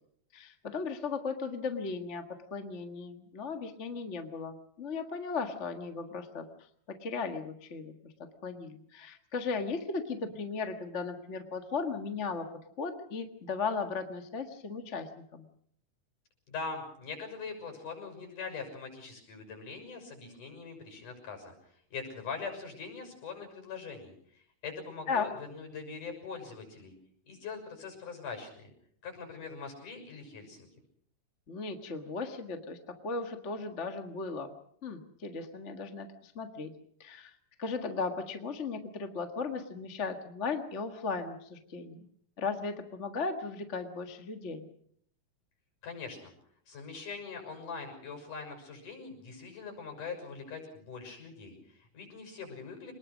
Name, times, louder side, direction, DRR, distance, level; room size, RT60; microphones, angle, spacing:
voice 1, 0.3-2.2 2.5-6.5 6.9-8.1 8.4-12.5 12.8-15.4 25.1-25.3 31.5-34.5 34.8-36.7 37.0-37.3 37.6-42.0 42.4-44.7, left 4 dB, 35° left, 6 dB, 1.3 m, -36 dB
voice 2, 16.5-21.5 21.9-26.9 27.2-28.7 29.0-30.7 45.8-46.3 46.7-52.9, left 5 dB, 75° left, 5 dB, 8.1 m, -42 dB
27.0 x 20.5 x 6.3 m, 0.64 s
omnidirectional pair, 3.7 m